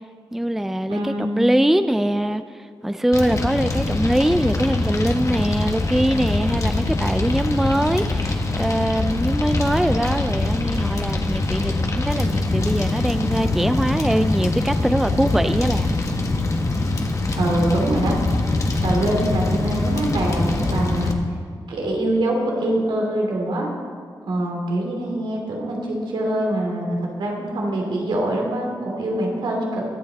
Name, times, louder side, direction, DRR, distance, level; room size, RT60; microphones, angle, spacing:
voice 1, 0.3-15.9, right 1 dB, 5° right, 10 dB, 0.4 m, -22 dB
voice 2, 0.9-1.4 17.3-18.2 18.8-21.1 21.7-23.7 24.3-29.8, right 1 dB, 90° right, -1 dB, 3.1 m, -24 dB
Fire, 3.1-21.1, left 2 dB, 40° left, 1.5 m, -23 dB
23.0 x 8.7 x 4.1 m, 2.1 s
wide cardioid pair, 105°, 8 cm